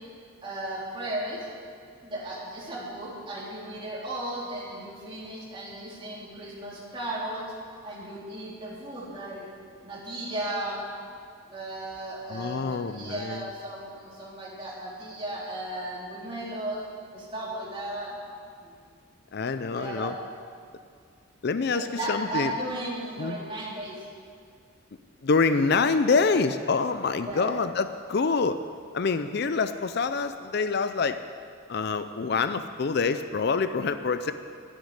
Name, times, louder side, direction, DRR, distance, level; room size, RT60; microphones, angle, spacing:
voice 1, 0.4-1.5 2.0-7.5 7.8-9.5 9.8-10.8 11.5-16.8 17.1-18.2 18.6-18.7 19.7-20.2 21.7-24.0 27.2-27.5, right 1 dB, 25° right, -6 dB, 3.7 m, -35 dB
voice 2, 12.3-13.4 19.3-20.1 21.4-22.5 23.2-23.4 25.2-28.6 28.9-31.2 31.7-34.3, left 4 dB, 50° left, 11 dB, 0.4 m, -26 dB
11.5 x 10.5 x 9.6 m, 2.3 s
head